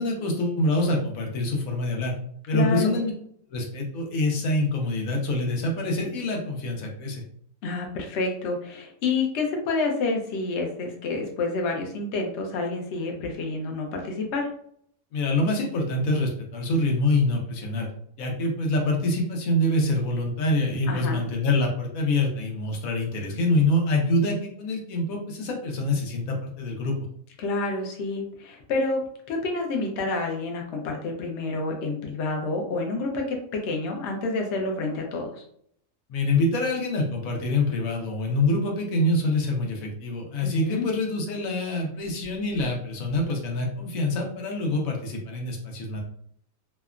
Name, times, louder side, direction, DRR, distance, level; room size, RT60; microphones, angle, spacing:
voice 1, 0.0-2.1 2.5-3.1 3.5-7.2 15.1-17.9 18.2-26.9 36.1-46.0, left 1 dB, 85° left, 1 dB, 1.1 m, -25 dB
voice 2, 2.5-3.0 7.6-14.5 20.9-21.2 27.4-29.0 29.3-35.4 40.4-40.9, left 3 dB, 65° left, 1 dB, 0.8 m, -28 dB
2.8 x 2.2 x 2.4 m, 0.65 s
omnidirectional pair, 1.4 m